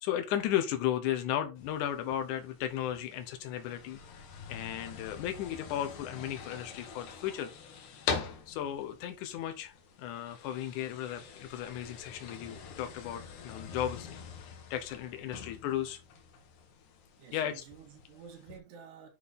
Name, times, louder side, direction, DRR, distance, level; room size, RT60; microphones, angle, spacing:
voice 1, 0.0-4.0 4.5-7.5 8.5-9.7 10.0-16.0 17.3-17.6, left 11 dB, 80° left, 1.8 m, -35 dB
sound 1, 1.6-18.6, left 6 dB, 60° left, 2.3 m, -44 dB
voice 2, 17.2-19.1, right 7 dB, 80° right, 4.0 m, -51 dB
8.1 x 5.5 x 4.1 m
omnidirectional pair, 4.7 m